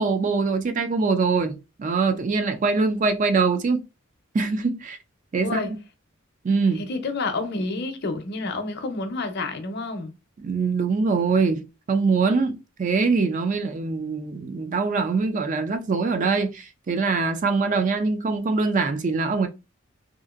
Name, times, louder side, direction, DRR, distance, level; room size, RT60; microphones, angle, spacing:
voice 1, 0.0-3.8 4.3-5.0 5.3-5.6 6.4-6.8 10.4-19.5, right 4 dB, 40° right, 0.4 m, -23 dB
voice 2, 5.4-5.7 6.7-10.1, left 3 dB, 55° left, 0.6 m, -29 dB
2.8 x 2.4 x 2.4 m
head